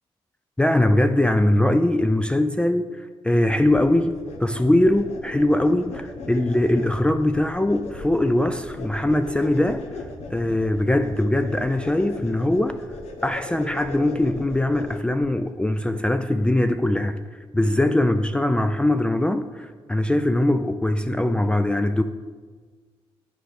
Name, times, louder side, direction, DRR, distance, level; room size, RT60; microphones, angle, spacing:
voice 1, 0.6-9.8 10.3-12.8 13.2-17.2 17.5-22.0, left 1 dB, 10° left, 0.3 m, -21 dB
sound 1, 3.6-15.2, left 3 dB, 80° left, 0.8 m, -38 dB
9.9 x 4.4 x 3.4 m
cardioid pair, 75°, 11 cm